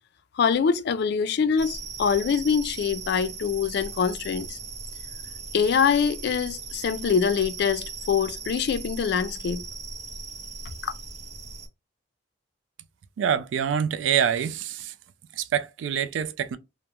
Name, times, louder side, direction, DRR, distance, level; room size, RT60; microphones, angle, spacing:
voice 1, 0.4-4.6 5.5-9.6 10.8-10.9, left 6 dB, 60° left, 0.3 m, -24 dB
sound 1, 1.6-11.7, right 4 dB, 35° right, 0.6 m, -38 dB
voice 2, 13.2-14.9 15.4-16.6, right 8 dB, 80° right, 0.3 m, -26 dB
2.2 x 2.1 x 2.9 m
head